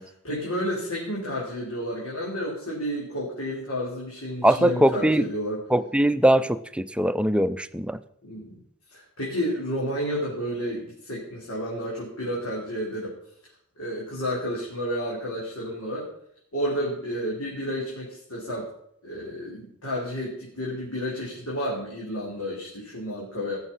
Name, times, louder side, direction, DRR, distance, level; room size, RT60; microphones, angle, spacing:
voice 1, 0.0-5.6 8.2-8.6 8.9-13.1 13.8-16.1 16.5-18.7 19.0-23.6, equal, 90° left, -5 dB, 4.5 m, -31 dB
voice 2, 4.4-5.3 5.7-8.0, right 1 dB, 5° right, 13 dB, 0.5 m, -21 dB
18.0 x 7.4 x 5.7 m, 0.70 s
head